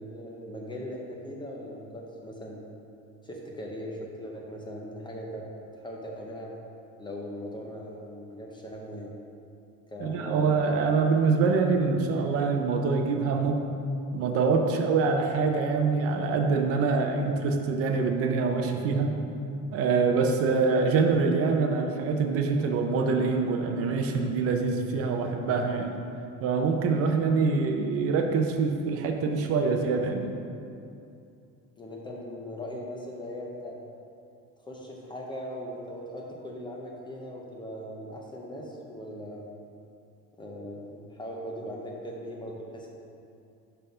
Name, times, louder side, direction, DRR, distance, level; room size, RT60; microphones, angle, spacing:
voice 1, 0.0-2.6 3.2-5.5 5.8-6.5 7.0-9.1 9.9-10.6 31.8-33.8 34.6-39.4 40.4-42.9, equal, 15° left, -2 dB, 0.5 m, -39 dB
voice 2, 10.0-13.6 14.1-19.1 19.7-26.0 26.4-30.3, right 4 dB, 45° right, 4 dB, 0.6 m, -25 dB
5.6 x 5.6 x 5.5 m, 2.6 s
cardioid pair, 180°, 33 cm